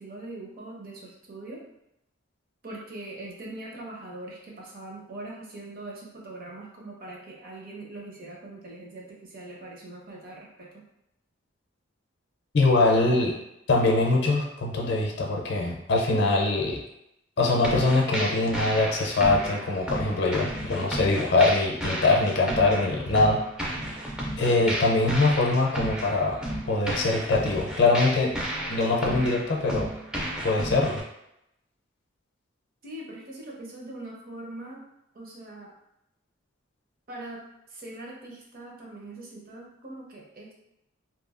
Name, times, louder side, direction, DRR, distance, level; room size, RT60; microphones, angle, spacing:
voice 1, 0.0-1.6 2.6-10.7 32.8-34.8 35.1-35.7 37.1-40.5, right 2 dB, 45° right, -2 dB, 0.7 m, -42 dB
voice 2, 12.5-13.3 13.7-16.8 17.4-23.4 24.4-26.4 26.7-28.3 28.7-29.9 30.4-31.0, left 2 dB, 60° left, 0 dB, 0.5 m, -23 dB
sound 1, 17.6-31.0, equal, 5° right, 0.3 m, -33 dB
2.9 x 2.3 x 2.4 m, 0.82 s
head